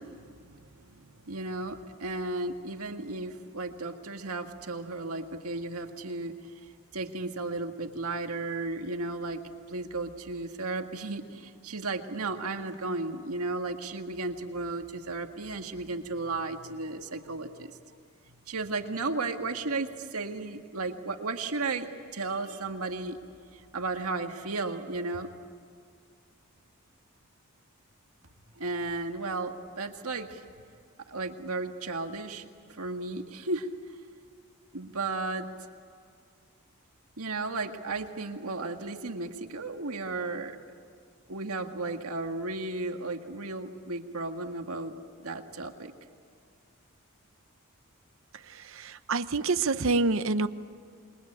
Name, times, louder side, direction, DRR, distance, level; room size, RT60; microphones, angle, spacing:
voice 1, 0.0-9.4 9.7-17.7 18.5-23.2 23.5-25.3 28.6-30.4 31.1-32.4 32.7-33.7 34.7-35.5 37.2-40.6 41.3-44.9 45.2-45.9, right 3 dB, 80° right, 5 dB, 1.8 m, -34 dB
voice 2, 48.5-50.5, right 3 dB, 60° right, 11 dB, 0.8 m, -27 dB
27.5 x 21.5 x 8.7 m, 2.2 s
head